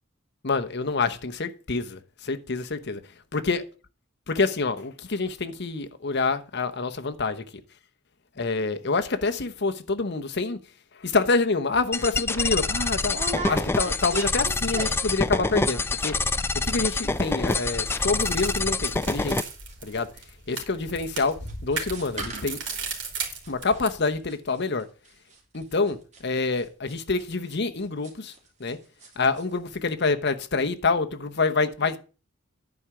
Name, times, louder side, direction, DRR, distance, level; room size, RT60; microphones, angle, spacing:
voice 1, 0.4-3.0 3.3-3.6 4.3-7.4 8.4-10.6 11.0-13.2 13.5-16.2 16.6-19.4 19.8-20.1 20.5-22.6 23.5-24.9 25.5-28.3 28.6-28.8 29.2-32.0, left 3 dB, 55° left, 0.9 m, -27 dB
sound 1, 11.7-11.9 12.2-12.4 13.1-15.2 15.5-15.9 16.2-16.3 16.5-16.8 17.1-19.4 19.7-28.7 29.0-29.4 29.7-29.8, right 2 dB, 35° right, 3.1 m, -39 dB
sound 2, 11.9-19.4, left 3 dB, 10° left, 0.4 m, -26 dB
sound 3, 17.0-24.0, right 5 dB, 60° right, 3.3 m, -37 dB
10.5 x 4.9 x 7.0 m
head